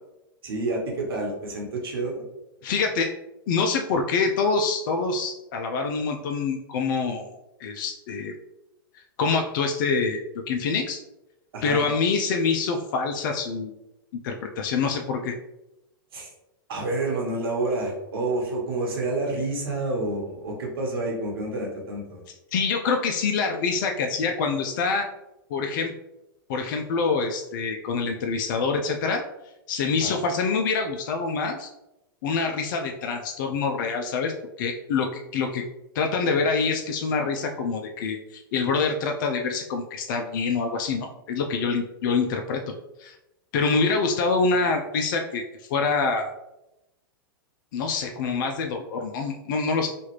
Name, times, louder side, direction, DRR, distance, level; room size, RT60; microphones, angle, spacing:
voice 1, 0.4-2.2 11.5-11.9 16.1-16.3 16.7-22.2 30.0-30.2, right 2 dB, 75° right, -1 dB, 1.2 m, -29 dB
voice 2, 2.6-3.1 3.5-7.3 7.6-8.3 8.9-10.2 10.5-11.0 11.6-13.7 14.2-15.3 22.5-25.1 25.5-25.9 26.5-29.2 29.7-31.7 32.2-35.6 35.9-42.6 43.0-43.2 43.5-45.4 45.7-46.3 47.7-49.9, left 4 dB, 55° left, 3 dB, 0.4 m, -25 dB
3.0 x 2.4 x 3.0 m, 0.92 s
hypercardioid pair, 120°, 12 cm